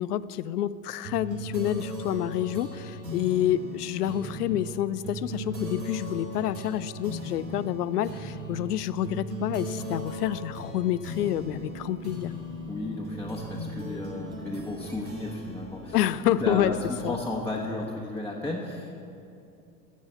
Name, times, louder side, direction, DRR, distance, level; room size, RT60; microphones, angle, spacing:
voice 1, 0.0-12.3 15.9-16.7 17.0-17.2, left 12 dB, 70° left, 16 dB, 0.5 m, -28 dB
sound 1, 1.0-16.9, equal, 90° right, 1.5 m, -38 dB
sound 2, 9.4-17.4, right 1 dB, 55° right, 2.5 m, -50 dB
voice 2, 12.7-16.0 16.4-19.0, left 2 dB, 5° left, -5 dB, 1.2 m, -33 dB
15.5 x 5.5 x 8.1 m, 2.6 s
figure-of-eight pair, 75°, 49 cm